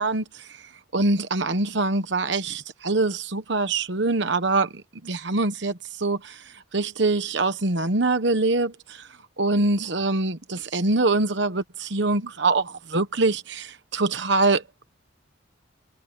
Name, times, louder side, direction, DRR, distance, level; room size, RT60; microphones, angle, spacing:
voice 1, 0.0-14.8, right 3 dB, 60° right, 1.1 m, -24 dB
head